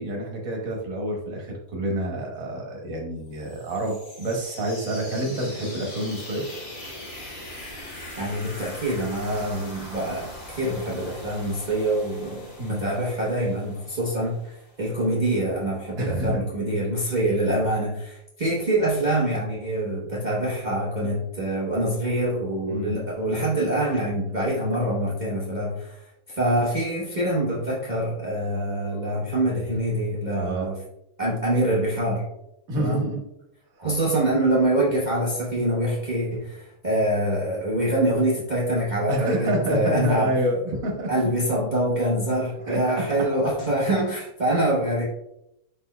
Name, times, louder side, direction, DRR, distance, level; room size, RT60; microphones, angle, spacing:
voice 1, 0.0-6.5 12.6-12.8 16.0-16.4 22.7-22.9 30.3-30.7 32.7-33.2 39.1-41.1 42.6-43.3, right 1 dB, 70° right, 0 dB, 1.6 m, -28 dB
sound 1, 3.3-15.0, left 1 dB, 45° left, 1.4 m, -41 dB
voice 2, 8.2-30.8 31.2-32.2 32.8-33.0 33.8-40.3 41.1-45.1, right 1 dB, 35° right, -7 dB, 0.9 m, -25 dB
5.4 x 4.2 x 2.2 m, 0.85 s
omnidirectional pair, 1.6 m